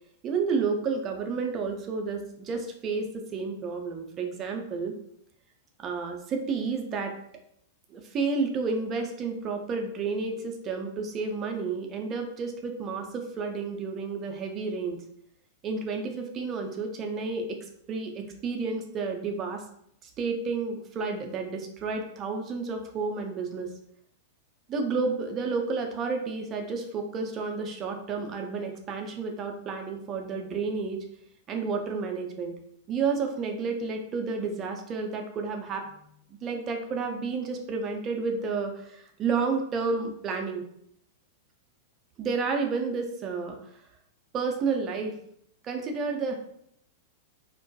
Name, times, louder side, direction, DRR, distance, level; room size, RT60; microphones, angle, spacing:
voice 1, 0.2-4.9 5.8-7.1 7.9-15.0 15.6-17.6 17.9-19.6 20.0-23.7 24.7-31.0 31.5-32.6 32.9-36.1 36.4-40.6 42.2-43.6 44.3-45.1 45.6-46.4, right 4 dB, 30° right, 3 dB, 0.4 m, -31 dB
2.2 x 2.1 x 2.6 m, 0.71 s
figure-of-eight pair, 95°, 0 cm